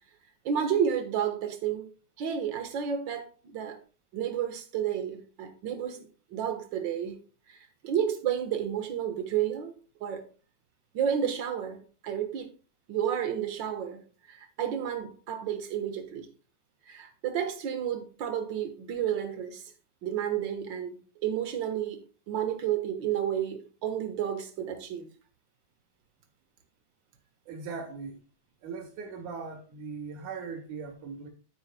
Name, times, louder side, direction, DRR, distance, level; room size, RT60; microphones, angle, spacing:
voice 1, 0.4-1.9 2.2-3.8 4.1-6.0 6.3-7.2 7.8-9.7 10.0-10.2 10.9-11.8 12.0-12.5 12.9-14.0 14.3-16.3 16.9-19.6 20.0-21.0 21.2-22.0 22.3-25.1, right 9 dB, 55° right, 1.4 m, -31 dB
voice 2, 27.5-28.2 28.6-31.3, right 5 dB, 85° right, 2.9 m, -39 dB
10.5 x 9.4 x 2.2 m
omnidirectional pair, 3.4 m